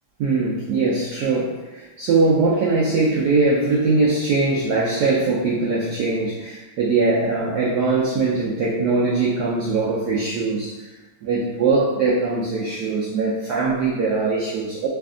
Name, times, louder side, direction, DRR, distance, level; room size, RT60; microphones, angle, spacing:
voice 1, 0.2-10.7 11.2-14.9, right 3 dB, 80° right, -5 dB, 0.8 m, -21 dB
3.2 x 2.5 x 3.6 m, 1.1 s
omnidirectional pair, 2.3 m